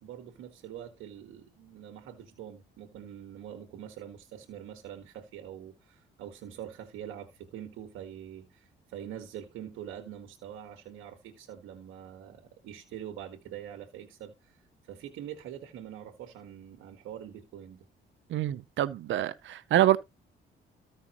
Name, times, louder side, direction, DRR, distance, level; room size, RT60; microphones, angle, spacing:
voice 1, 0.0-17.9, right 10 dB, 90° right, 1.7 m, -44 dB
voice 2, 18.3-20.0, right 13 dB, 70° right, 0.7 m, -26 dB
14.5 x 5.7 x 3.0 m
cardioid pair, 90°, 20 cm